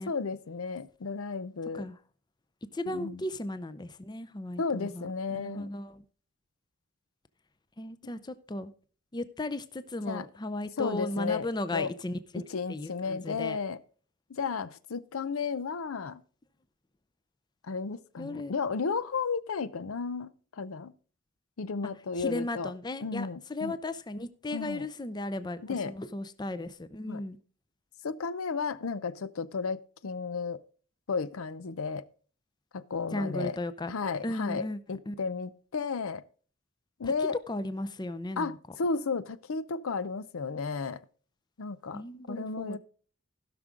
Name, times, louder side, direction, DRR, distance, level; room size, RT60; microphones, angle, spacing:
voice 1, 0.0-1.9 2.9-3.2 4.6-5.7 10.1-10.3 10.8-11.5 11.7-11.9 12.5-13.8 14.3-16.2 17.6-20.9 21.6-22.7 23.0-23.8 24.5-24.9 25.6-25.9 27.1-27.2 28.0-30.6 31.1-32.1 32.7-33.6 33.9-36.2 37.0-37.4 38.4-41.0 41.6-42.0 42.3-42.8, left 5 dB, 85° left, 0.6 m, -33 dB
voice 2, 2.7-5.1 5.3-6.0 7.8-8.7 9.1-12.4 12.7-13.6 18.2-18.5 22.2-27.4 33.1-33.9 34.2-34.8 35.1-35.2 37.0-37.1 37.5-38.6 41.9-42.8, left 1 dB, 20° left, 0.5 m, -36 dB
16.0 x 6.1 x 3.7 m
head